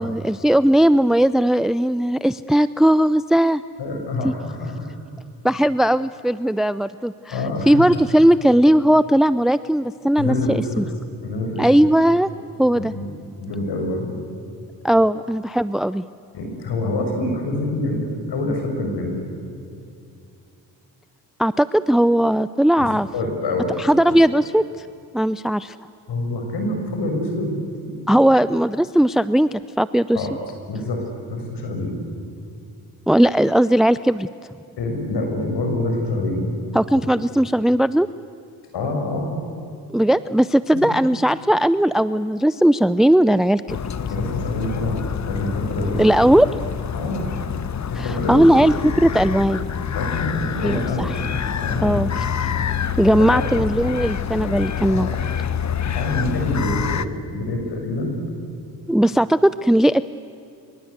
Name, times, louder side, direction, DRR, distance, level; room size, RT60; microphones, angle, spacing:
voice 1, 0.0-3.6 4.2-4.3 5.4-10.8 11.6-12.3 12.6-12.9 14.8-16.0 21.4-23.1 23.8-24.9 25.1-25.8 28.1-30.3 33.1-34.3 36.7-38.1 39.9-43.8 46.0-46.5 47.9-49.6 50.6-51.1 51.8-52.1 53.0-55.1 58.9-60.1, right 1 dB, ahead, 16 dB, 0.6 m, -18 dB
voice 2, 3.8-4.9 7.3-8.0 10.2-10.9 11.2-11.7 12.8-13.1 13.4-14.2 16.3-19.1 22.8-23.8 26.1-28.0 30.1-30.4 30.7-32.0 34.8-36.5 38.7-39.3 40.7-40.9 44.1-46.0 46.9-47.3 47.9-48.5 49.9-51.1 51.5-52.1 53.2-53.4 54.9-55.1 55.8-58.2, left 2 dB, 65° left, 3 dB, 6.3 m, -26 dB
sound 1, 43.7-57.1, left 8 dB, 40° left, 1.2 m, -27 dB
26.0 x 24.5 x 8.1 m, 2.6 s
supercardioid pair, 55°, 43 cm